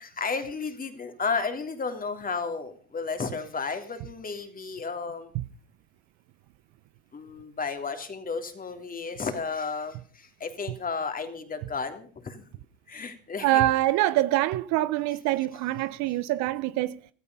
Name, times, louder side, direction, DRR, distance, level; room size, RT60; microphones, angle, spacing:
voice 1, 0.2-5.3 7.1-12.4 12.9-13.6, left 4 dB, 25° left, 3.3 m, -33 dB
voice 2, 13.4-17.0, right 15 dB, 65° right, 0.9 m, -25 dB
16.5 x 14.0 x 5.5 m
hypercardioid pair, 85°, 32 cm